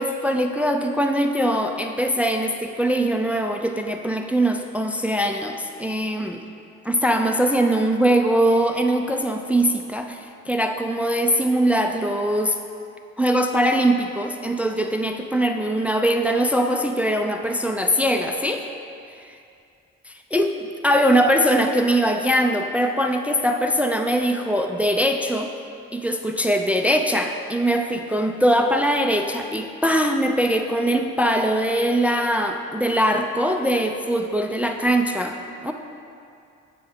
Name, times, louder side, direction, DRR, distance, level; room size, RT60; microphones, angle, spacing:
voice 1, 0.0-6.4 6.8-12.6 13.2-18.7 20.1-25.5 25.9-35.4 35.6-35.7, equal, 5° right, 5 dB, 0.4 m, -22 dB
7.5 x 3.5 x 5.2 m, 2.5 s
hypercardioid pair, 45°, 35 cm